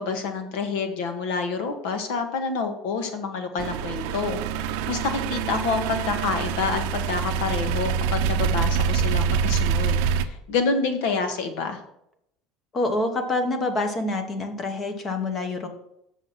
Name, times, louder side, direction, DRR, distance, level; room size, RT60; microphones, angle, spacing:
voice 1, 0.0-11.8, left 4 dB, 80° left, 7 dB, 1.3 m, -28 dB
sound 1, 3.6-10.2, right 7 dB, 75° right, 0.5 m, -25 dB
voice 2, 12.7-15.7, left 2 dB, 25° left, 6 dB, 1.1 m, -26 dB
7.5 x 6.4 x 5.8 m, 0.78 s
cardioid pair, 180°, 0 cm